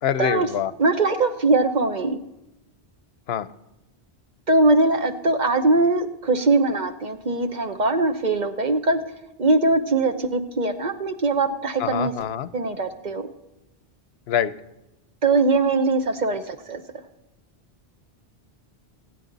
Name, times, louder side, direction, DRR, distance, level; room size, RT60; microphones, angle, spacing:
voice 1, 0.0-0.7 3.3-3.5 11.8-12.5 14.3-14.5, left 9 dB, 75° left, 15 dB, 0.9 m, -25 dB
voice 2, 0.8-2.2 4.5-9.0 9.4-12.1 12.5-13.3 15.2-16.8, right 3 dB, 45° right, 8 dB, 1.0 m, -21 dB
27.0 x 9.4 x 4.0 m, 0.94 s
omnidirectional pair, 1.1 m